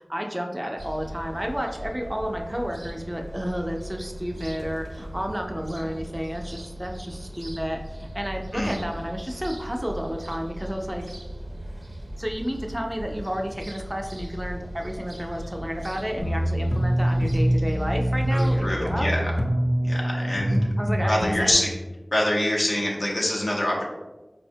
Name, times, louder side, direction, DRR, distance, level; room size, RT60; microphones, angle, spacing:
voice 1, 0.0-11.0 12.2-19.1 20.8-21.6, equal, 15° right, 2 dB, 0.4 m, -31 dB
sound 1, 0.8-18.8, right 1 dB, 60° right, 0.6 m, -38 dB
sound 2, 16.2-21.5, equal, 40° left, 0.5 m, -24 dB
voice 2, 18.3-19.3 19.8-20.6 21.0-21.7 22.1-23.8, left 1 dB, 75° left, -2 dB, 0.7 m, -25 dB
4.2 x 2.1 x 2.6 m, 1.1 s
wide cardioid pair, 45°, 0 cm